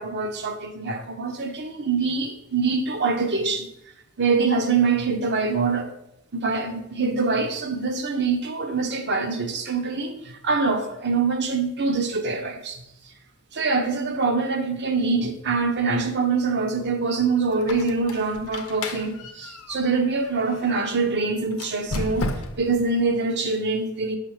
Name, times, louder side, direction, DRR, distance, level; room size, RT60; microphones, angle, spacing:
voice 1, 0.0-3.7 4.2-5.9 6.3-12.8 13.5-22.3 22.6-24.2, right 4 dB, 55° right, 0.9 m, -24 dB
Squeak, 17.5-20.7 21.5-22.8, left 2 dB, 80° left, 0.7 m, -34 dB
6.7 x 5.8 x 3.3 m
head